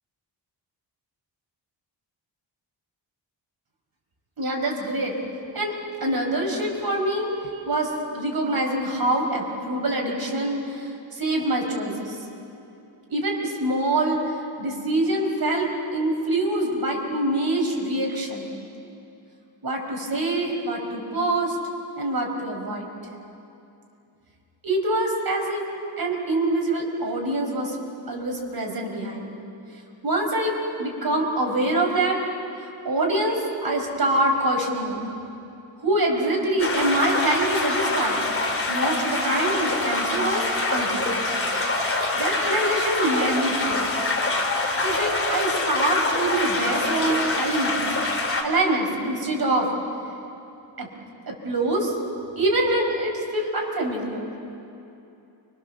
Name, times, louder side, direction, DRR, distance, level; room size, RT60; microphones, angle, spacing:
voice 1, 4.4-5.1 5.5-5.7 6.0-12.1 13.1-18.5 19.6-21.6 22.0-22.9 24.6-25.6 26.0-27.8 28.1-29.3 30.0-32.2 32.9-35.0 35.8-38.2 38.7-40.4 40.7-41.2 42.1-43.9 44.8-47.8 48.4-49.7 50.8-50.9 51.3-51.9 52.4-54.3, right 1 dB, 55° right, 1 dB, 5.2 m, -25 dB
sound 1, 36.6-48.4, left 2 dB, 30° left, 3.5 m, -25 dB
29.5 x 25.5 x 7.1 m, 2.7 s
wide cardioid pair, 105°, 45 cm